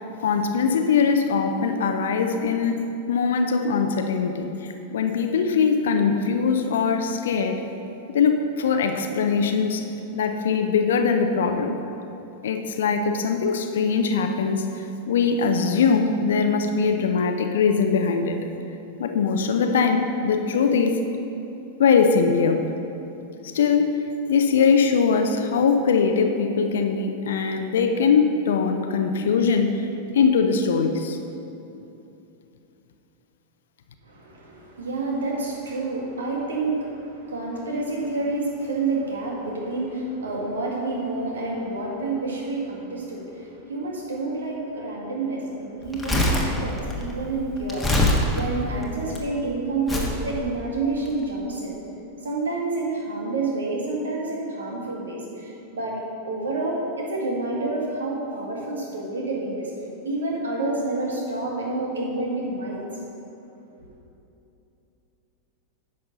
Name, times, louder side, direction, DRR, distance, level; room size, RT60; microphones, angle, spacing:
voice 1, 0.2-2.8 3.1-7.6 8.1-9.8 10.1-11.8 12.4-18.4 19.0-21.0 21.8-22.7 23.5-24.0 24.3-29.9 30.1-31.2, left 5 dB, 60° left, 6 dB, 0.6 m, -21 dB
voice 2, 34.0-51.7 52.2-56.0 56.2-59.7 60.0-62.8, right 2 dB, 70° right, -2 dB, 1.9 m, -29 dB
Crumpling crinkling, 45.8-49.2 49.9-50.2 50.9-51.1, left 1 dB, 5° left, 1.4 m, -24 dB
10.5 x 6.4 x 5.4 m, 2.9 s
figure-of-eight pair, 90°, 0 cm